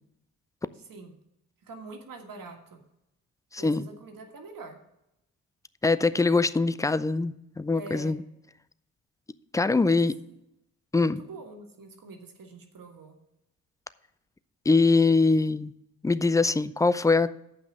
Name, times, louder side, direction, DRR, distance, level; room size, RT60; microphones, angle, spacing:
voice 1, 0.7-1.1 1.6-2.8 3.6-4.8 7.7-8.2 9.8-10.3 11.0-13.2, right 3 dB, 50° right, 4 dB, 1.7 m, -45 dB
voice 2, 3.5-3.8 5.8-8.2 9.5-10.1 10.9-11.2 14.7-15.7 16.0-17.3, left 3 dB, 10° left, 15 dB, 0.4 m, -23 dB
7.8 x 5.8 x 7.6 m, 0.83 s
hypercardioid pair, 40°, 42 cm